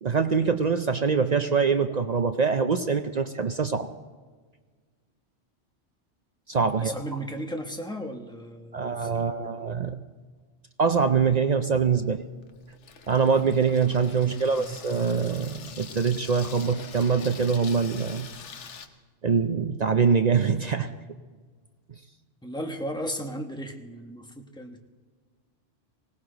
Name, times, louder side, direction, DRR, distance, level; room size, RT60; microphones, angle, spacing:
voice 1, 0.0-3.9 6.5-6.9 8.7-10.0 10.8-12.2 13.1-18.3 19.2-20.9, right 5 dB, 55° right, 8 dB, 0.5 m, -24 dB
voice 2, 6.7-9.5 14.2-14.7 22.4-24.9, equal, 5° left, 3 dB, 1.1 m, -36 dB
Water tap faucet / Sink (filling or washing), 11.7-18.9, left 6 dB, 70° left, 1.2 m, -45 dB
20.0 x 17.5 x 3.9 m, 1.5 s
omnidirectional pair, 1.2 m